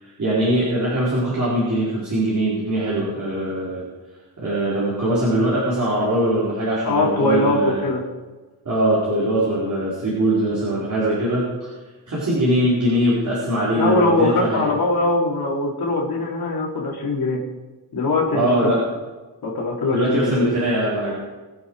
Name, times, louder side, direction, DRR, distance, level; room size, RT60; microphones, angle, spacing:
voice 1, 0.0-3.8 4.4-7.8 8.6-11.7 12.1-14.6 18.3-18.8 19.9-21.1, right 1 dB, 45° right, -8 dB, 4.8 m, -21 dB
voice 2, 6.8-8.0 13.8-17.4 17.9-18.8 19.4-20.5, left 2 dB, 60° left, -3 dB, 3.6 m, -21 dB
24.0 x 8.4 x 4.9 m, 1.3 s
wide cardioid pair, 170°, 41 cm